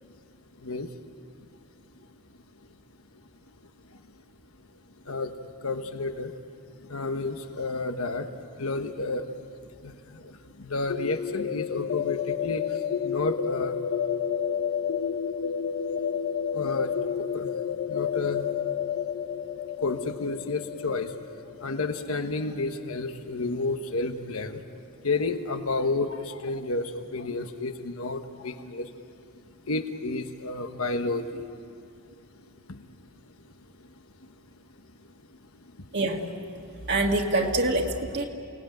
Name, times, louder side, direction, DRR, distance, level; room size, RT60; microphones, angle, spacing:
voice 1, 0.6-0.9 3.9-4.0 5.0-6.3 6.8-9.5 9.8-13.8 14.5-14.6 16.5-18.5 19.8-21.2 21.6-24.6 25.0-29.0 29.6-31.9 32.7-32.8 33.3-33.4 33.8-33.9 34.2-34.3 35.0-35.9, left 3 dB, 75° left, 7 dB, 1.2 m, -31 dB
sound 1, 10.9-22.6, left 8 dB, 55° left, 0.7 m, -30 dB
voice 2, 35.9-36.3 36.9-38.3, right 2 dB, 50° right, 0 dB, 1.8 m, -25 dB
28.5 x 19.0 x 9.1 m, 2.4 s
head